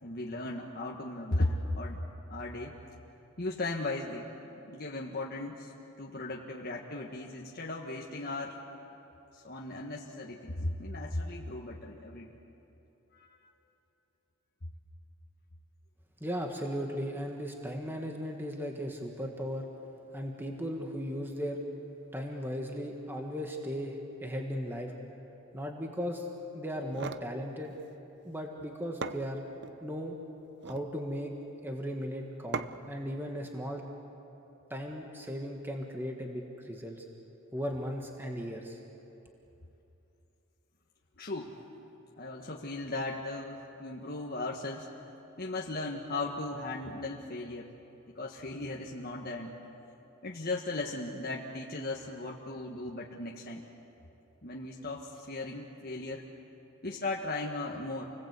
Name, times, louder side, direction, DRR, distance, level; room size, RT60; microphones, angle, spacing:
voice 1, 0.0-2.0 2.3-2.8 3.4-4.3 4.6-5.7 6.0-8.6 9.3-12.4 13.1-13.4 41.2-41.5 42.2-44.9 45.4-47.7 48.1-49.5 50.2-53.7 54.4-56.2 56.8-58.1, left 2 dB, 45° left, -2 dB, 1.6 m, -36 dB
voice 2, 16.2-19.7 20.1-21.6 22.1-24.9 25.5-26.3 26.5-27.7 28.2-29.4 29.8-30.2 30.6-31.3 31.6-33.9 34.7-37.0 37.5-38.8, equal, 10° right, 1 dB, 1.6 m, -37 dB
sound 1, 26.7-27.3 28.6-28.7 29.0-29.8 30.5-30.9 32.5-33.0, right 5 dB, 50° right, 0.7 m, -38 dB
28.5 x 20.0 x 8.2 m, 3.0 s
head